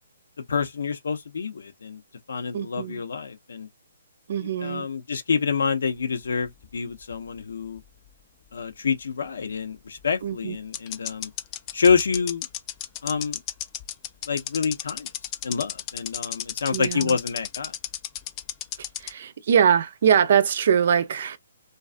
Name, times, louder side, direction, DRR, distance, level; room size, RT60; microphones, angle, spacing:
voice 1, 0.5-2.0 2.3-3.7 4.4-7.8 8.5-11.3 11.7-12.5 13.0-13.4 14.3-15.1 15.4-17.7, left 6 dB, 75° left, 0.6 m, -27 dB
voice 2, 2.5-3.0 4.3-4.9 10.2-10.6 16.7-17.2 19.0-21.4, right 8 dB, 55° right, 0.4 m, -22 dB
sound 1, 6.2-8.1 10.0-10.1 10.7-19.1, left 12 dB, 25° left, 0.3 m, -33 dB
2.4 x 2.3 x 2.4 m
hypercardioid pair, 150°, 0 cm